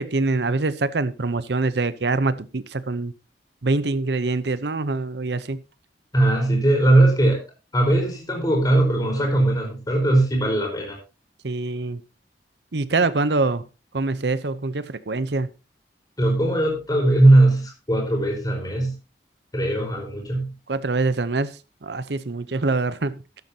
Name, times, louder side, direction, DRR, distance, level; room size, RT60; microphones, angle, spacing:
voice 1, 0.0-3.1 3.6-5.6 11.4-12.0 12.7-13.6 13.9-15.5 20.7-21.5 21.8-23.2, right 3 dB, 70° right, 0.8 m, -24 dB
voice 2, 6.1-7.4 7.7-11.0 16.2-18.9 19.5-20.5, right 1 dB, 20° left, 4.6 m, -19 dB
13.0 x 12.0 x 2.8 m
head